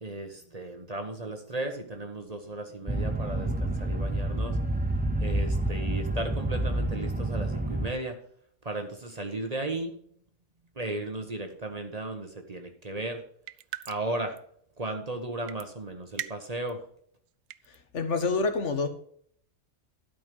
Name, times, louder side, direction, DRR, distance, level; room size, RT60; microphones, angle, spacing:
voice 1, 0.0-4.6 5.2-8.2 8.6-9.9 10.8-13.2 13.9-14.3 14.8-16.8, right 2 dB, 30° right, 5 dB, 1.3 m, -35 dB
sound 1, 2.9-7.9, right 1 dB, 10° right, 0.6 m, -29 dB
sound 2, 13.5-14.1 14.4-14.5 15.5-15.7 16.2-16.7 17.3-17.8, right 13 dB, 85° right, 0.9 m, -38 dB
voice 2, 17.9-18.9, left 4 dB, 70° left, 8 dB, 1.6 m, -27 dB
12.0 x 5.5 x 5.4 m, 0.63 s
omnidirectional pair, 1.3 m